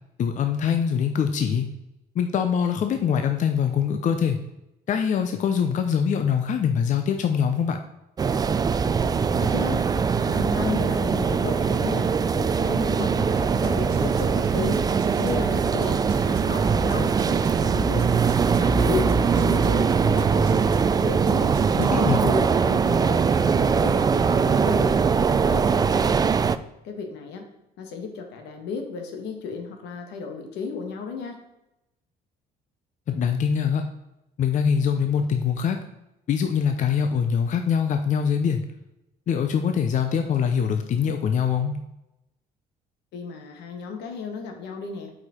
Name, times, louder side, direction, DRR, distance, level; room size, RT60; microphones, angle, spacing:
voice 1, 0.2-1.7 2.1-4.4 4.9-7.8 21.8-22.2 33.1-33.8 34.4-35.8 36.3-38.7 39.3-41.8, left 7 dB, 45° left, 6 dB, 0.7 m, -23 dB
sound 1, 8.2-26.6, right 6 dB, 25° right, 0.3 m, -22 dB
voice 2, 9.3-9.8 10.1-14.8 15.2-18.1 18.4-20.4 21.0-21.6 21.9-26.2 26.8-27.5 27.8-31.4 43.1-45.1, left 5 dB, 80° left, 4 dB, 1.5 m, -34 dB
sound 2, 13.4-22.1, right 10 dB, 80° right, 0.5 m, -38 dB
sound 3, 14.6-24.9, left 4 dB, 65° left, 1.5 m, -43 dB
8.1 x 5.1 x 4.3 m, 0.90 s
cardioid pair, 110°, 17 cm